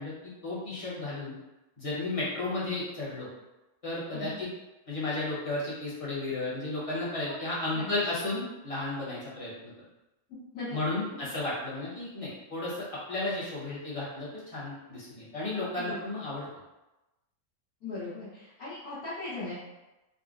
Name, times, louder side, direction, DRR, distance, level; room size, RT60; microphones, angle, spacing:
voice 1, 0.0-1.3 1.8-3.3 3.8-4.5 4.9-9.7 10.7-16.5, left 2 dB, 30° left, -8 dB, 0.7 m, -33 dB
voice 2, 17.8-19.5, left 2 dB, 85° left, -12 dB, 1.4 m, -38 dB
3.7 x 2.0 x 2.4 m, 1.0 s
omnidirectional pair, 1.5 m